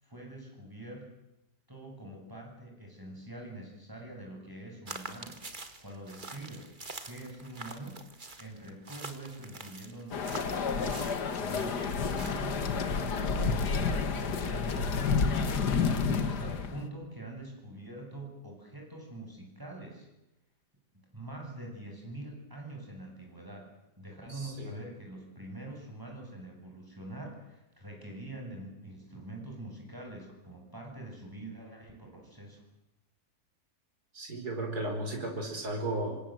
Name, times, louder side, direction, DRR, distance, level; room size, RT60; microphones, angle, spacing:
voice 1, 0.0-1.1 1.7-5.4 5.8-6.8 7.0-11.1 11.4-20.1 20.9-23.7 24.0-32.6, right 1 dB, 10° right, 1 dB, 8.0 m, -45 dB
sound 1, 4.9-12.6, right 3 dB, 30° right, 2.0 m, -46 dB
sound 2, 10.1-16.9, left 5 dB, 70° left, 2.3 m, -30 dB
voice 2, 24.3-24.8 34.1-36.2, right 1 dB, 65° right, 3 dB, 5.2 m, -35 dB
27.0 x 25.5 x 7.9 m, 0.91 s
omnidirectional pair, 1.8 m